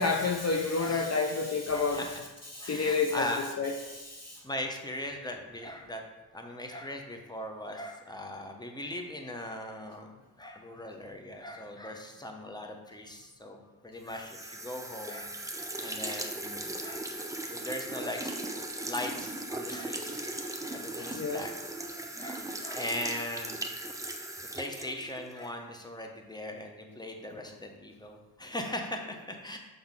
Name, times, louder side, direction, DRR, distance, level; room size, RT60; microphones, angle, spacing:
voice 1, 0.0-2.0 2.5-3.3 3.6-4.4 20.6-20.7 21.0-21.4, left 4 dB, 40° left, 2 dB, 0.7 m, -29 dB
voice 2, 0.8-1.1 1.7-2.2 2.6-3.4 4.4-6.0 6.3-10.1 10.4-15.3 15.8-17.1 17.5-18.3 18.9-20.3 20.7-21.5 22.2-23.6 24.5-29.6, left 1 dB, 10° left, 3 dB, 1.0 m, -39 dB
sound 1, 14.1-25.5, right 2 dB, 10° right, 0.8 m, -38 dB
5.6 x 5.3 x 3.8 m, 1.1 s
supercardioid pair, 45°, 41 cm